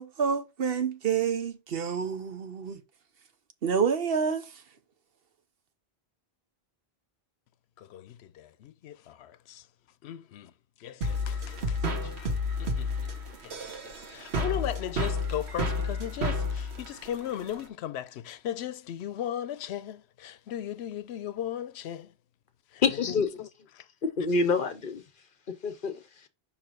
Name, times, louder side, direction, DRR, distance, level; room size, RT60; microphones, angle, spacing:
voice 1, 0.0-2.8 3.6-4.5, right 6 dB, 65° right, 1.1 m, -28 dB
voice 2, 7.8-9.6 10.0-10.5 10.8-12.3 12.6-13.1 13.4-13.6 13.8-22.1 22.7-22.8 23.1-23.5 23.7-23.9, left 10 dB, 90° left, 0.8 m, -37 dB
sound 1, 11.0-17.7, left 2 dB, 85° right, 1.5 m, -31 dB
voice 3, 22.8-23.3 24.0-25.0 25.5-26.0, left 4 dB, 55° left, 1.0 m, -27 dB
5.6 x 4.8 x 4.5 m
omnidirectional pair, 1.1 m